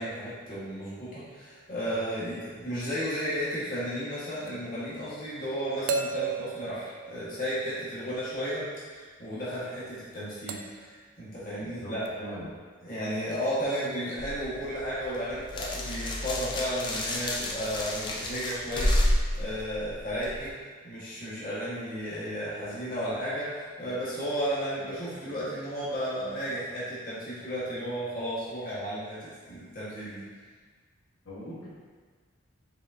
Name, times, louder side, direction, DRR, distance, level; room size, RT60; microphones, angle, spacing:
voice 1, 0.0-12.0 12.8-20.5 20.8-30.2, equal, 40° left, -10 dB, 1.4 m, -33 dB
sound 1, 4.5-4.6 5.9-7.9 10.5-10.9 12.1-12.2, right 6 dB, 70° right, 0.3 m, -34 dB
voice 2, 11.6-11.9 12.2-12.5 31.2-31.7, equal, 65° left, -10 dB, 1.1 m, -40 dB
sound 2, 14.2-20.5, left 1 dB, 20° left, 0.3 m, -30 dB
4.9 x 3.7 x 2.6 m, 1.5 s
head